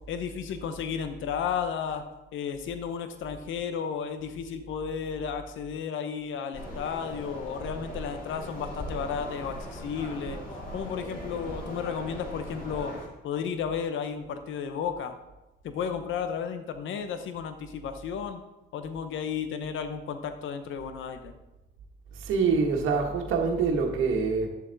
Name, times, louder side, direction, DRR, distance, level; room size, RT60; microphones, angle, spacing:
voice 1, 0.1-2.0 2.3-10.4 10.7-12.9 13.2-15.2 15.6-18.4 18.7-21.3, left 7 dB, 75° left, 8 dB, 0.9 m, -33 dB
sound 1, 6.5-13.1, equal, 45° left, 3.4 m, -39 dB
voice 2, 22.1-24.5, right 5 dB, 85° right, 2 dB, 1.5 m, -25 dB
11.0 x 7.2 x 4.0 m, 0.98 s
cardioid pair, 90°, 20 cm